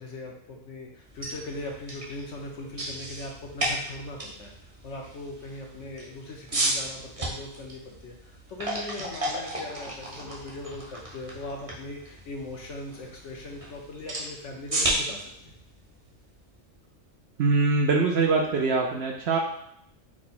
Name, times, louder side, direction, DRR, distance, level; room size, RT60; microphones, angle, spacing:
voice 1, 0.0-4.5 4.8-15.3, left 2 dB, 70° left, 0 dB, 1.1 m, -39 dB
sound 1, 1.0-16.9, right 1 dB, 30° right, 0.8 m, -34 dB
voice 2, 17.4-19.4, right 4 dB, 60° right, 0 dB, 0.8 m, -23 dB
4.7 x 2.2 x 4.1 m, 0.69 s
omnidirectional pair, 1.3 m